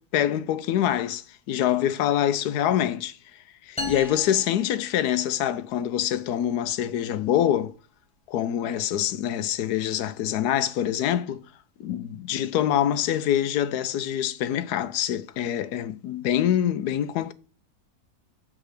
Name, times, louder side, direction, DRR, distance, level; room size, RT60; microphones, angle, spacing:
voice 1, 0.0-3.2 3.7-7.7 8.3-11.4 11.8-17.3, left 11 dB, 80° left, 1.1 m, -25 dB
sound 1, 3.8-5.5, left 2 dB, 5° left, 1.1 m, -36 dB
7.3 x 3.7 x 4.9 m
omnidirectional pair, 1.7 m